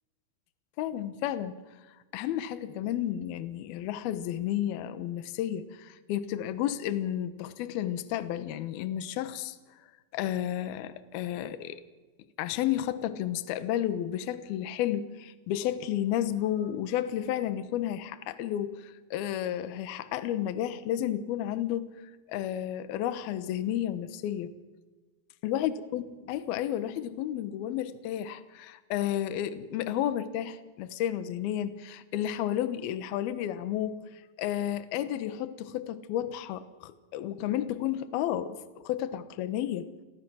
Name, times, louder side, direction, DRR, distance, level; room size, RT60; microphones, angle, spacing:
voice 1, 0.8-1.6 2.1-9.6 10.1-11.8 12.4-21.9 22.3-24.5 25.4-34.1 34.4-39.9, left 11 dB, 75° left, 12 dB, 2.4 m, -32 dB
29.5 x 22.5 x 6.4 m, 1.3 s
omnidirectional pair, 5.9 m